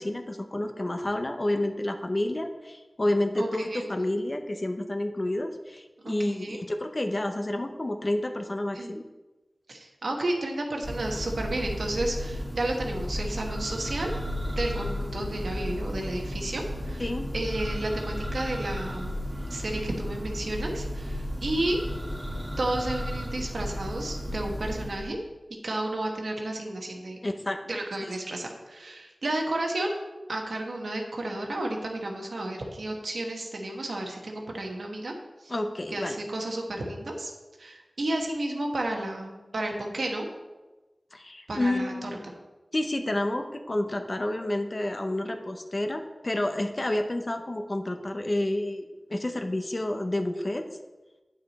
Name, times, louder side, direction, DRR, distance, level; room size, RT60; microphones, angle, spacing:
voice 1, 0.0-9.0 17.0-17.3 27.2-27.6 28.0-28.1 35.5-36.2 41.1-42.3 42.7-48.8 49.1-50.7, left 1 dB, 40° left, 6 dB, 0.8 m, -29 dB
voice 2, 3.3-3.8 6.0-6.6 8.7-8.9 9.7-14.1 14.5-17.0 17.3-19.1 19.5-21.8 22.6-25.2 25.6-27.2 27.7-29.9 30.3-35.1 35.4-35.5 35.9-37.3 37.6-40.3 41.5-42.1, right 1 dB, 85° right, 1 dB, 1.3 m, -32 dB
Church bell, 10.8-25.1, equal, 5° right, 2.0 m, -34 dB
8.9 x 6.2 x 4.2 m, 1.2 s
wide cardioid pair, 50°, 0 cm